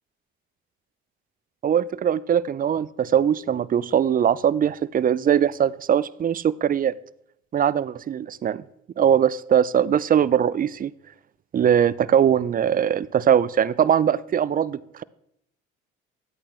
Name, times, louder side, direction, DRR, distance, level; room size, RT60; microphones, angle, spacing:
voice 1, 1.6-6.9 7.5-8.6 9.0-10.9 11.5-15.0, right 9 dB, 30° right, 19 dB, 0.4 m, -21 dB
10.5 x 8.5 x 3.2 m, 0.75 s
hypercardioid pair, 60°, 31 cm